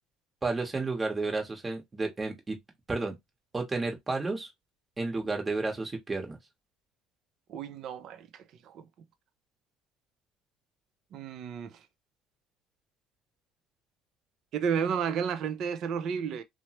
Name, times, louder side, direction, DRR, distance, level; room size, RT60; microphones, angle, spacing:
voice 1, 0.4-2.6 2.9-3.1 3.5-4.5 5.0-6.4, right 3 dB, 20° right, 1.0 m, -31 dB
voice 2, 7.5-8.3 8.7-8.8 11.1-11.7 14.5-16.4, right 7 dB, 55° right, 0.5 m, -32 dB
3.1 x 2.0 x 2.8 m
cardioid pair, 115°, 0 cm